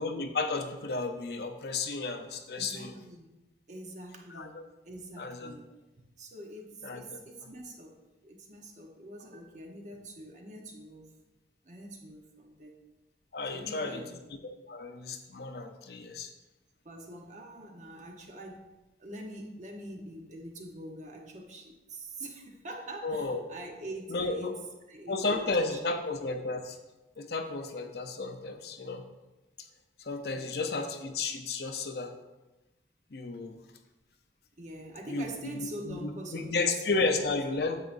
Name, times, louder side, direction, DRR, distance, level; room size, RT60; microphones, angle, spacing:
voice 1, 0.0-3.0 4.3-4.7 5.2-5.6 6.8-7.5 13.3-14.0 14.4-16.3 23.0-23.4 24.1-24.5 25.1-26.8 27.2-29.0 29.6-29.7 30.0-32.2 33.1-33.6 35.0-37.8, left 3 dB, 60° left, 6 dB, 0.7 m, -33 dB
voice 2, 2.5-3.3 3.7-4.6 4.8-5.7 6.2-8.0 8.2-11.1 11.6-12.8 13.5-14.2 16.8-18.6 19.0-24.5 24.9-25.8 30.3-30.6 34.6-36.7 37.0-37.1, right 1 dB, 40° right, 1 dB, 1.0 m, -44 dB
9.2 x 7.3 x 2.6 m, 1.0 s
head